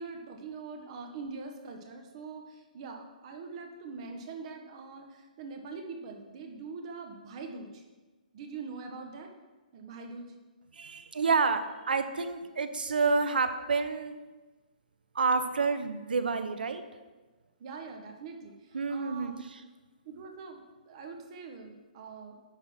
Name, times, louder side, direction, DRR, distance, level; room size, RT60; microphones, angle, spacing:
voice 1, 0.0-7.8 8.3-9.3 9.7-10.3 17.6-19.4 20.0-22.4, right 4 dB, 40° right, 4 dB, 1.3 m, -43 dB
voice 2, 10.7-14.1 15.1-16.8 18.7-19.6, right 4 dB, 90° right, 9 dB, 0.8 m, -29 dB
10.0 x 4.0 x 5.6 m, 1.2 s
hypercardioid pair, 155°, 5 cm